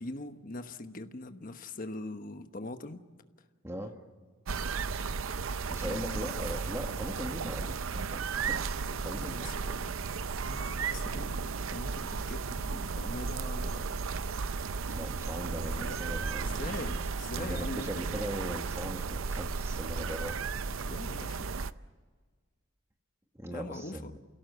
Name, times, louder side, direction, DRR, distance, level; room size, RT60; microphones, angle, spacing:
voice 1, 0.0-3.0 5.8-6.4 8.8-9.9 10.4-13.9 15.8-16.0 16.4-18.0 20.7-21.5 23.5-24.1, left 2 dB, 40° left, 8 dB, 1.2 m, -42 dB
voice 2, 3.6-4.0 5.6-8.7 9.0-9.8 14.9-17.1 17.3-20.7 23.3-24.2, equal, 15° right, 4 dB, 1.6 m, -40 dB
sound 1, 4.5-21.7, right 5 dB, 70° right, 0.6 m, -34 dB
28.5 x 17.0 x 8.0 m, 1.5 s
head